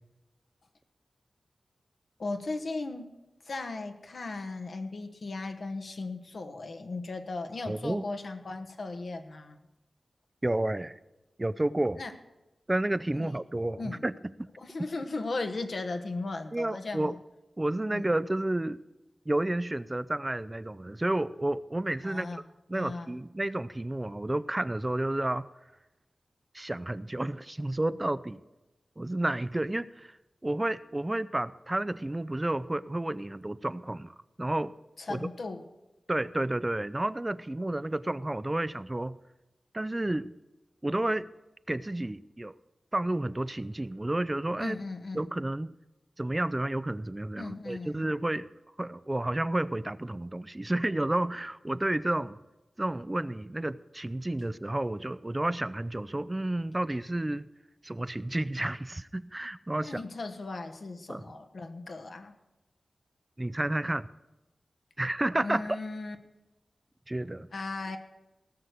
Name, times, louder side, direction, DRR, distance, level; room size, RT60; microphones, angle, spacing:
voice 1, 2.2-3.1 3.4-9.6 12.0-12.1 13.1-13.3 13.8-14.0 14.6-17.1 17.9-18.1 22.0-22.4 22.7-23.1 35.0-35.7 44.6-45.2 47.4-48.1 59.8-62.3 65.4-66.2 67.5-68.0, left 3 dB, 70° left, 6 dB, 1.2 m, -37 dB
voice 2, 7.7-8.1 10.4-11.0 11.4-12.0 12.7-14.1 16.5-17.1 17.6-18.8 19.3-22.3 22.7-25.5 26.5-28.4 29.0-30.2 30.4-34.7 35.1-35.2 36.1-39.2 39.7-40.3 40.8-41.3 41.7-42.5 42.9-44.8 45.1-45.7 46.2-48.5 48.8-52.4 52.8-57.5 57.8-60.0 61.1-61.2 63.4-64.1 65.0-65.6 67.1-67.5, right 1 dB, 25° right, 15 dB, 0.4 m, -31 dB
18.0 x 6.4 x 6.8 m, 1.0 s
cardioid pair, 50°, 0 cm